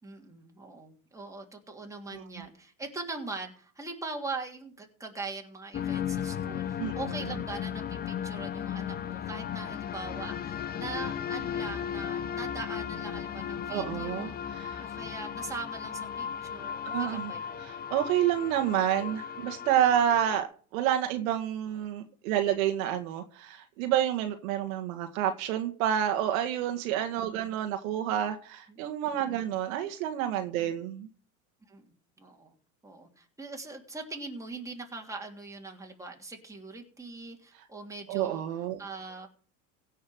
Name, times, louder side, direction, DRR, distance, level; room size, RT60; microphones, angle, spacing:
voice 1, 0.0-14.3 14.8-17.6 27.1-27.5 28.7-28.8 29.2-29.6 30.6-30.9 31.7-32.5 32.8-38.4 38.8-39.3, right 3 dB, 5° right, 3.0 m, -42 dB
sound 1, 5.7-20.4, left 9 dB, 20° left, 0.6 m, -35 dB
voice 2, 13.7-14.8 16.8-17.3 17.6-20.5 20.7-31.1 38.1-38.8, right 11 dB, 65° right, 1.8 m, -29 dB
16.5 x 5.7 x 7.8 m
hypercardioid pair, 110°, 44 cm